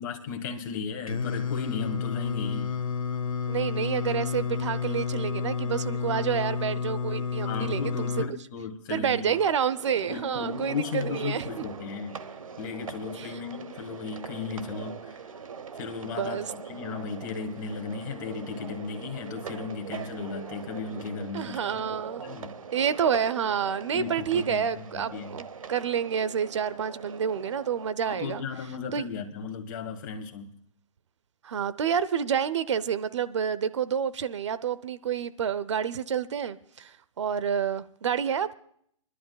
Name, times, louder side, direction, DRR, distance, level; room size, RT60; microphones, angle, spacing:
voice 1, 0.0-2.7 7.4-9.3 10.1-12.2 12.6-15.0 15.8-21.9 22.2-22.6 23.9-25.4 28.0-30.5, left 5 dB, 35° left, 1.8 m, -35 dB
Singing, 1.1-8.3, left 5 dB, 80° left, 1.2 m, -30 dB
voice 2, 3.5-8.2 8.9-11.6 13.1-13.4 16.0-16.5 21.3-22.2 22.7-28.4 28.9-29.1 31.4-38.5, right 8 dB, 60° right, 0.8 m, -29 dB
sound 1, 9.3-27.9, right 6 dB, 80° right, 1.1 m, -42 dB
28.5 x 11.5 x 2.4 m
hypercardioid pair, 155°, 17 cm